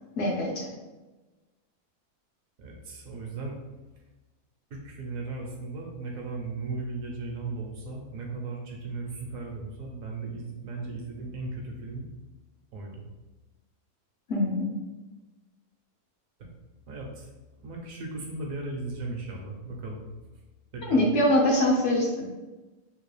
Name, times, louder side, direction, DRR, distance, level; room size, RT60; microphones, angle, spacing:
voice 1, 0.2-0.7 14.3-14.7 20.9-22.3, left 1 dB, 65° left, -1 dB, 0.8 m, -23 dB
voice 2, 2.6-3.6 4.7-12.1 12.7-13.0 16.4-16.5 16.9-17.3 17.6-20.0 20.7-21.1, right 3 dB, 65° right, 0 dB, 1.1 m, -36 dB
3.7 x 2.4 x 3.2 m, 1.1 s
omnidirectional pair, 1.6 m